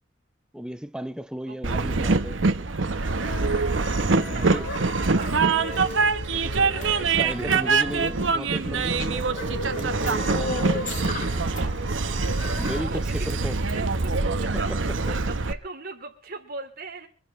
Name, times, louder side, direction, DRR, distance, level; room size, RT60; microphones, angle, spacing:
voice 1, 0.5-2.5 3.9-4.7 6.8-11.2 11.6-11.7 12.4-13.6 14.5-14.8, equal, 5° right, 0.7 m, -35 dB
voice 2, 1.5-1.8 4.1-5.9 12.5-17.1, right 3 dB, 50° right, 3.2 m, -40 dB
Train, 1.6-15.5, right 4 dB, 80° right, 1.0 m, -24 dB
sound 1, 2.5-12.8, left 1 dB, 80° left, 4.5 m, -38 dB
sound 2, 5.0-5.1 5.7-6.9 7.5-8.1 8.9-9.4 9.8-11.6 11.9-12.1 13.2-13.3, left 3 dB, 45° left, 2.4 m, -35 dB
25.5 x 11.5 x 3.2 m
head